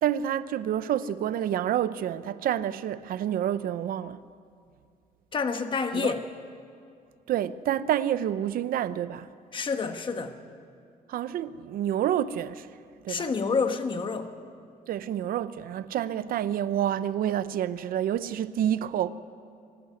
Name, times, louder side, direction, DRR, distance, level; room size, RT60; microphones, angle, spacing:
voice 1, 0.0-4.2 5.9-6.1 7.3-9.3 11.1-12.8 13.0-13.3 14.9-19.1, right 10 dB, 75° right, 0.7 m, -28 dB
voice 2, 5.3-6.2 9.5-10.4 13.1-14.3, left 5 dB, 35° left, 1.3 m, -28 dB
23.5 x 12.5 x 9.5 m
cardioid pair, 140°, 15 cm